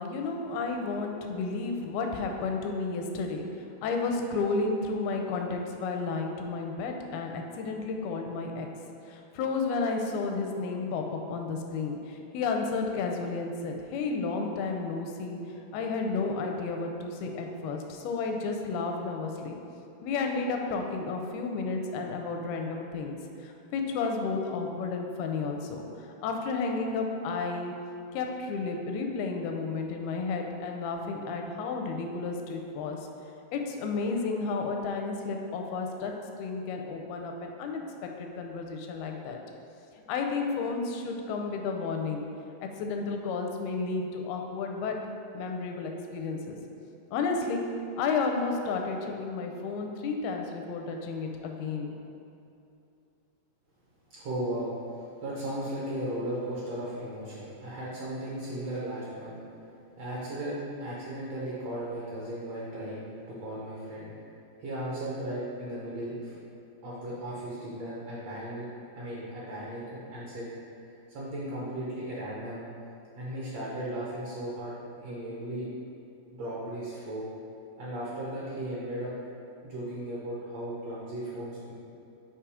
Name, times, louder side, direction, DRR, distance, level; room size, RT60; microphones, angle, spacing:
voice 1, 0.0-3.4 3.8-8.7 9.1-19.6 20.0-27.7 28.1-33.0 33.5-36.1 36.4-39.4 40.1-42.3 42.6-45.0 45.3-46.6 47.1-47.6 48.0-52.0, left 4 dB, 85° left, 3 dB, 2.5 m, -32 dB
voice 2, 54.1-59.4 60.0-64.1 64.6-66.4 66.8-68.7 69.0-70.5 71.1-72.6 73.2-75.7 76.3-77.2 77.8-79.1 79.6-81.7, right 1 dB, 75° right, -7 dB, 1.5 m, -36 dB
8.4 x 2.9 x 4.8 m, 2.7 s
omnidirectional pair, 4.3 m